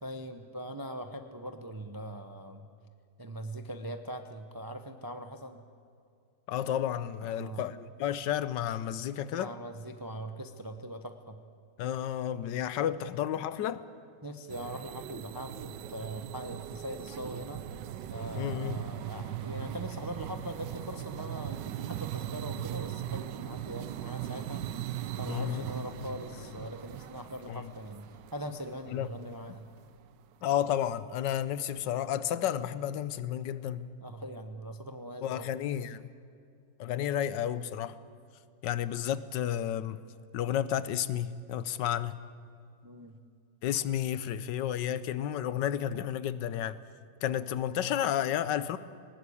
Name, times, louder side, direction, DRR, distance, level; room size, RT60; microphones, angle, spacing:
voice 1, 0.0-2.7 3.2-5.6 7.2-7.7 9.3-11.4 14.2-17.6 18.1-24.6 25.2-29.7 34.0-35.5 42.8-43.2, equal, 30° right, 0.4 m, -41 dB
voice 2, 6.5-9.6 11.8-13.8 18.4-18.8 25.3-25.7 27.5-27.7 28.9-29.1 30.4-33.9 35.2-36.1 36.8-38.0 38.6-40.0 40.3-42.2 43.6-46.8 47.2-48.8, left 10 dB, 75° left, 1.4 m, -31 dB
sound 1, 14.5-29.8, right 11 dB, 75° right, 1.3 m, -39 dB
19.0 x 19.0 x 8.4 m
omnidirectional pair, 2.0 m